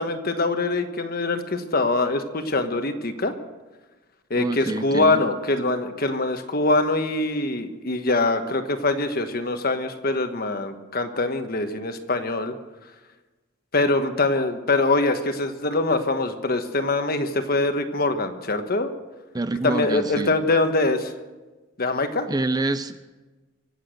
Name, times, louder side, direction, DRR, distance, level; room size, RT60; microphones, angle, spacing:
voice 1, 0.0-3.3 4.3-12.5 13.7-18.9 19.6-21.1 21.8-22.3, left 2 dB, 50° left, 8 dB, 1.3 m, -23 dB
voice 2, 4.3-5.2 19.3-20.3 22.3-23.0, right 2 dB, 20° right, 11 dB, 0.5 m, -27 dB
25.0 x 8.3 x 6.6 m, 1.2 s
head